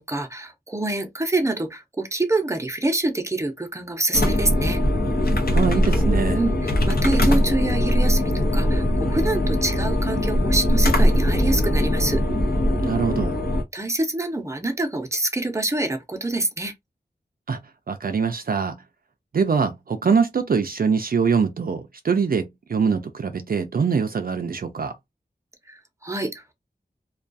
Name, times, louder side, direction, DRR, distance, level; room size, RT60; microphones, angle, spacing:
voice 1, 0.0-4.8 6.3-12.2 13.7-16.7 25.7-26.5, right 2 dB, 15° right, 0.6 m, -26 dB
sound 1, 4.1-13.6, equal, 65° left, 0.7 m, -21 dB
voice 2, 5.5-6.4 12.8-13.4 17.5-17.6 17.9-18.8 19.3-24.9, right 5 dB, 60° right, 0.4 m, -23 dB
2.3 x 2.3 x 2.5 m
wide cardioid pair, 60°, 17 cm